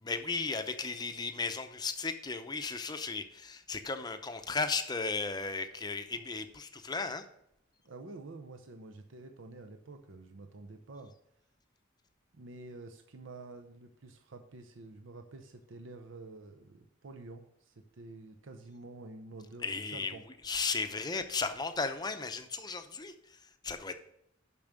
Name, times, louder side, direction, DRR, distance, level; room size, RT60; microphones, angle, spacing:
voice 1, 0.0-7.2 19.6-20.1 20.4-24.0, left 4 dB, 20° left, 8 dB, 0.6 m, -35 dB
voice 2, 7.8-11.2 12.3-20.2, right 3 dB, 75° right, 6 dB, 0.7 m, -49 dB
7.0 x 6.0 x 6.6 m, 0.77 s
head